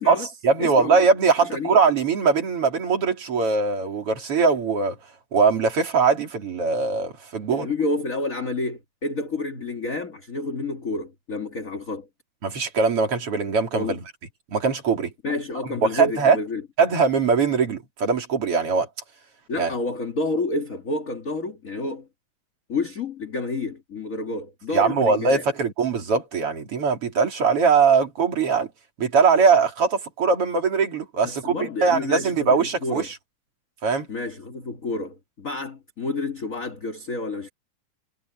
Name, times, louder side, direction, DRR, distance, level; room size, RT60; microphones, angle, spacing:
voice 1, 0.1-5.0 5.3-7.7 12.4-14.0 14.5-15.1 15.8-16.4 16.8-18.9 19.6-19.7 24.7-28.7 29.0-33.2 33.8-34.1, right 5 dB, 40° right, 4.0 m, -21 dB
voice 2, 0.6-1.0 1.4-1.7 7.5-12.1 13.7-14.0 15.2-16.6 19.5-22.1 22.7-25.4 31.2-33.1 34.1-37.5, left 3 dB, 30° left, 1.9 m, -29 dB
omnidirectional pair, 4.0 m